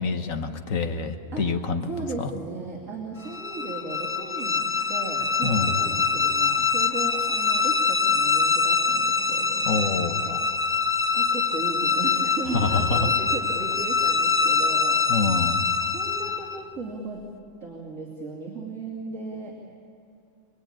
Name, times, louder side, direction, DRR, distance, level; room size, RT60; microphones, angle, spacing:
voice 1, 0.0-1.9 2.2-2.3 5.4-5.8 9.7-10.2 12.5-13.0 15.1-15.6, left 4 dB, 75° left, 7 dB, 1.6 m, -26 dB
voice 2, 1.8-10.8 11.1-15.1 15.9-17.3 17.6-19.6, right 3 dB, 70° right, -3 dB, 3.1 m, -36 dB
sound 1, 3.2-16.6, left 4 dB, 20° left, 0.4 m, -24 dB
25.5 x 21.0 x 8.8 m, 2.5 s
omnidirectional pair, 1.4 m